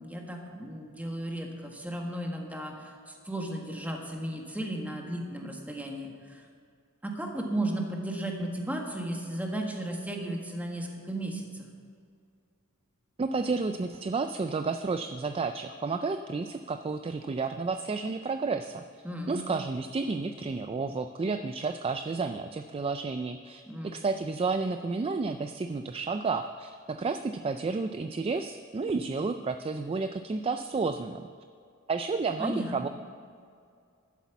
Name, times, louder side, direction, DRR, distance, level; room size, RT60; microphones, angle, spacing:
voice 1, 0.0-6.4 7.0-11.7 19.0-19.5 23.7-24.0 32.4-32.9, right 1 dB, 5° right, 1 dB, 1.5 m, -35 dB
voice 2, 13.2-18.8 19.3-31.3 31.9-32.9, right 4 dB, 25° right, 8 dB, 0.3 m, -31 dB
11.5 x 8.3 x 7.1 m, 2.4 s
head